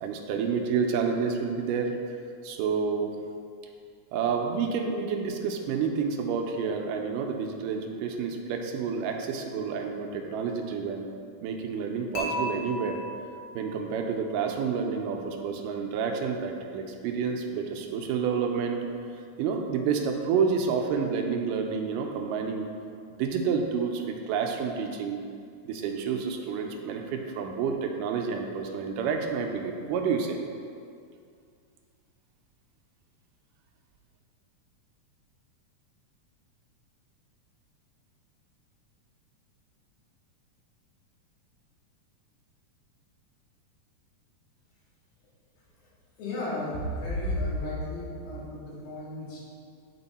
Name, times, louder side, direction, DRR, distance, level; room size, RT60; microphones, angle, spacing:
voice 1, 0.0-1.9 2.4-3.1 4.1-11.1 11.4-13.0 13.6-18.8 19.4-22.7 23.2-25.2 25.7-30.4, right 6 dB, 85° right, 3 dB, 2.2 m, -29 dB
Dishes pots and pans / Chink clink, 12.2-14.3, left 1 dB, 60° left, 1.6 m, -36 dB
voice 2, 46.2-49.4, left 1 dB, 90° left, -7 dB, 3.4 m, -33 dB
8.9 x 4.3 x 4.1 m, 2.3 s
omnidirectional pair, 3.8 m